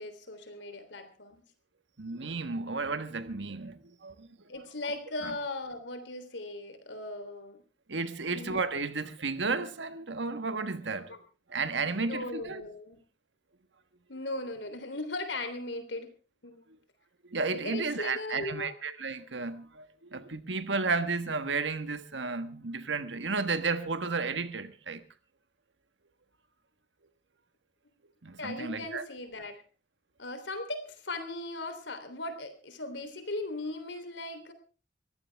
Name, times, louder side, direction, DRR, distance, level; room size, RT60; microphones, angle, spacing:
voice 1, 0.0-1.4 4.5-7.6 8.3-8.6 10.9-11.2 11.8-13.0 14.1-16.1 16.4-16.6 17.5-18.7 28.4-29.6 30.2-34.5, left 2 dB, 80° left, 3.5 m, -38 dB
voice 2, 2.0-4.4 5.2-5.3 7.9-11.2 11.5-12.6 17.2-25.0 28.2-29.0, right 4 dB, 85° right, 1.5 m, -33 dB
22.0 x 15.0 x 3.5 m
head